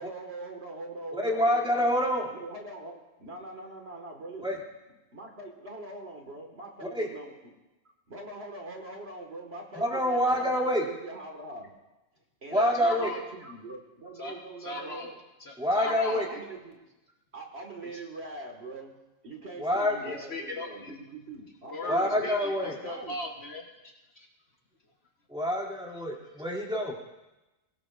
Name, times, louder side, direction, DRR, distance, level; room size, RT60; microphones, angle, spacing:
voice 1, 0.0-4.6 5.1-7.3 8.1-11.7 12.4-15.2 16.1-16.8 17.3-19.0 19.2-22.3 22.6-23.1, right 2 dB, 50° right, 1 dB, 2.1 m, -42 dB
voice 2, 1.2-2.3 4.4-4.6 6.9-7.1 9.8-10.8 12.5-13.1 15.6-16.3 19.6-20.1 21.9-22.8 25.3-26.9, equal, 5° right, -4 dB, 2.6 m, -26 dB
voice 3, 12.5-13.2 14.2-14.3 14.6-15.1 15.4-16.4 20.0-21.0 21.7-24.3, left 2 dB, 50° left, 1 dB, 1.5 m, -38 dB
22.5 x 17.0 x 2.6 m, 1.0 s
omnidirectional pair, 1.4 m